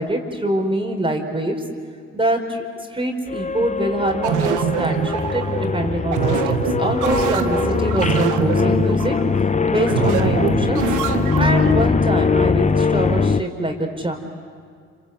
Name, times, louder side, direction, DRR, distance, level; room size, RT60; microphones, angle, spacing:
voice 1, 0.0-1.5 2.1-2.6 2.9-5.5 5.7-9.1 9.7-10.8 11.1-14.1, right 1 dB, 15° right, 3 dB, 4.7 m, -24 dB
sound 1, 3.3-13.4, left 4 dB, 25° left, 0.9 m, -21 dB
sound 2, 4.2-11.7, right 7 dB, 80° right, 1.5 m, -24 dB
27.0 x 26.5 x 8.3 m, 2.1 s
supercardioid pair, 60°, 30 cm